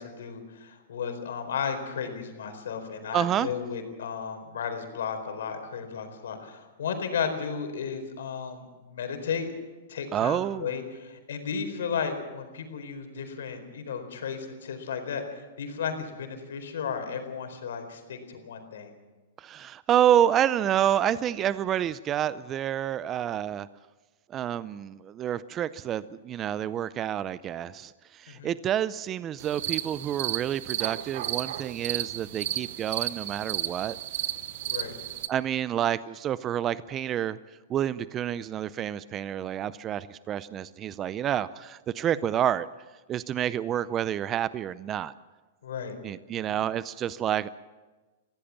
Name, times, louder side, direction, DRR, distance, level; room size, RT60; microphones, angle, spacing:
voice 1, 0.0-9.5 9.9-18.9 28.3-28.5 34.7-34.9 45.6-45.9 46.5-46.6, left 6 dB, 80° left, 6 dB, 4.3 m, -34 dB
voice 2, 3.1-3.5 10.1-10.7 19.4-23.7 24.3-34.0 35.3-37.4 37.7-42.7 43.1-45.1 46.0-47.5, right 10 dB, 30° right, 17 dB, 0.6 m, -28 dB
sound 1, 29.4-35.3, right 13 dB, 60° right, 0.9 m, -33 dB
23.0 x 16.5 x 7.2 m, 1.2 s
hypercardioid pair, 130°, 0 cm